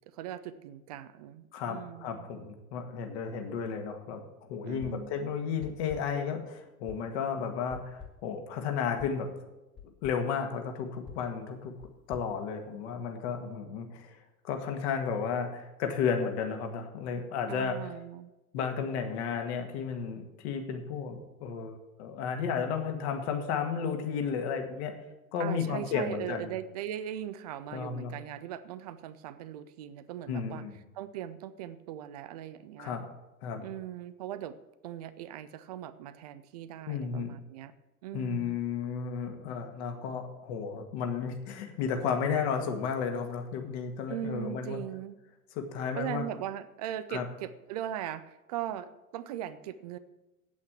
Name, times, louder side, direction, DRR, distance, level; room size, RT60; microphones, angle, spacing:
voice 1, 0.1-2.3 4.6-5.4 17.5-18.3 25.4-30.6 30.9-33.0 33.6-34.6 34.8-37.7 38.0-38.6 44.1-45.2 46.0-50.0, right 11 dB, 25° right, 13 dB, 0.4 m, -39 dB
voice 2, 1.5-9.3 10.0-11.7 12.1-14.2 14.4-17.9 18.5-24.9 25.3-26.5 27.7-28.1 30.3-30.7 32.8-33.0 33.4-33.6 36.8-37.3 38.1-44.8 45.6-46.3 47.1-47.3, left 6 dB, 45° left, 5 dB, 1.9 m, -33 dB
sound 1, 4.8-5.2 5.6-6.3 6.9-7.2 7.7-8.4 9.0-9.3 9.8-10.3 11.1-13.1, left 7 dB, 20° left, 2.2 m, -49 dB
8.6 x 8.4 x 7.6 m, 1.0 s
figure-of-eight pair, 95°, 47 cm